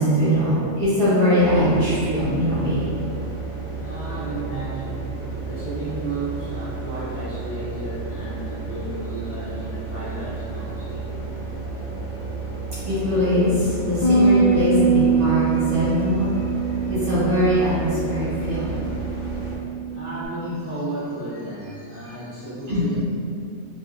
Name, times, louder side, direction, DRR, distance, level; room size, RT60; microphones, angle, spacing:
voice 1, 0.0-2.9 12.6-16.4 16.8-18.9 22.7-22.8, equal, 65° right, -11 dB, 1.1 m, -21 dB
sound 1, 1.4-19.6, right 3 dB, 75° left, 1.0 m, -32 dB
voice 2, 3.7-11.2 12.6-12.7 19.9-23.0, right 2 dB, 30° left, -11 dB, 0.8 m, -33 dB
Bass guitar, 14.0-20.3, right 4 dB, 55° left, 0.5 m, -23 dB
2.5 x 2.4 x 2.3 m, 2.5 s
omnidirectional pair, 1.3 m